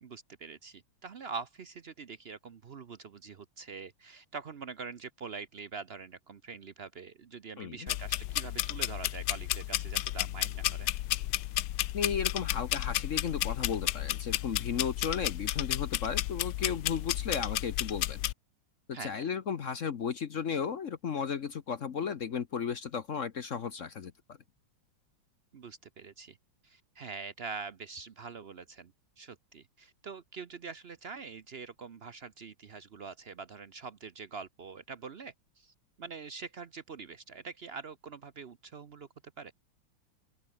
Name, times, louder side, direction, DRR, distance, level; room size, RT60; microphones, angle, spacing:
voice 1, 0.0-10.9 18.9-19.2 25.5-26.4 26.6-28.9 29.2-39.1 39.4-39.5, right 5 dB, 60° right, 0.6 m, -44 dB
voice 2, 7.6-7.9 11.9-18.2 18.9-24.1, left 7 dB, 50° left, 1.1 m, -34 dB
sound 1, 7.9-18.3, left 15 dB, 70° left, 1.2 m, -32 dB
open air
omnidirectional pair, 2.2 m